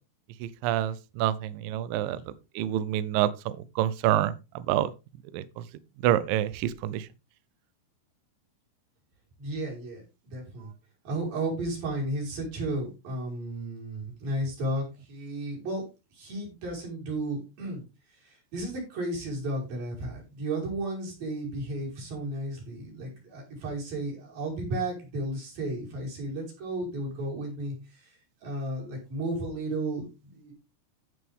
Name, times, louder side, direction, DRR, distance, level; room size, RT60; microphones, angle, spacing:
voice 1, 0.4-2.2 2.6-3.3 3.8-4.3 4.7-4.9 5.3-5.4 6.0-7.0, right 12 dB, 85° right, 2.0 m, -26 dB
voice 2, 9.4-10.0 10.3-10.7 11.0-15.8 16.1-17.8 18.2-28.1 28.4-30.5, right 1 dB, 55° right, 6.6 m, -33 dB
15.5 x 6.2 x 3.6 m
omnidirectional pair, 4.9 m